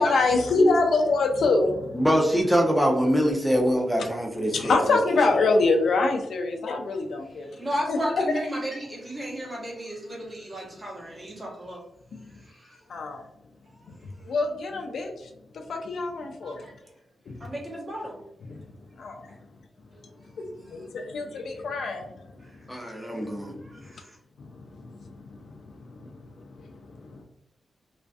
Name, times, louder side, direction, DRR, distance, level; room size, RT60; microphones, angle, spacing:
voice 1, 0.0-2.0 4.5-7.5 7.9-8.0 12.9-13.2 14.3-15.3 15.7-16.6 17.3-17.4 19.0-19.3 20.7-22.1 23.5-23.6 24.8-24.9 25.9-26.1 26.6-26.7 27.1-27.2, left 3 dB, 80° left, 3 dB, 0.3 m, -24 dB
voice 2, 1.9-5.0 22.7-23.5, equal, ahead, 0 dB, 0.5 m, -24 dB
voice 3, 7.5-11.8 12.4-12.8 16.4-16.7 17.4-18.2 20.7-20.9 22.4-22.5 23.6-24.2, equal, 25° right, -3 dB, 0.9 m, -34 dB
2.4 x 2.4 x 2.3 m, 0.84 s
wide cardioid pair, 145°, 0 cm